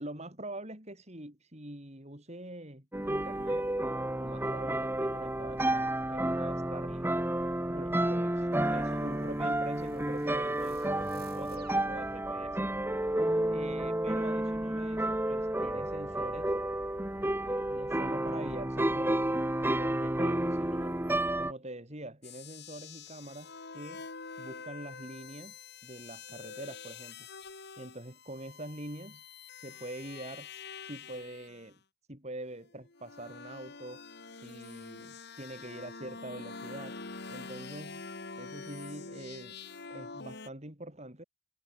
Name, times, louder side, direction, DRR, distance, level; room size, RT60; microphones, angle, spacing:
voice 1, 0.0-3.7 4.2-7.1 7.7-12.6 13.5-16.6 17.2-19.3 19.8-21.0 21.4-24.1 24.4-27.3 27.8-29.3 29.6-30.5 30.8-31.8 32.1-34.0 34.3-37.0 37.3-38.0 38.4-39.6 39.9-41.2, right 1 dB, 35° right, 5.8 m, -44 dB
sound 1, 2.9-21.5, right 1 dB, 10° right, 1.0 m, -31 dB
sound 2, 8.5-12.6, right 3 dB, 50° right, 2.4 m, -51 dB
sound 3, 22.2-31.7 32.6-40.5, left 4 dB, 55° left, 2.1 m, -46 dB
head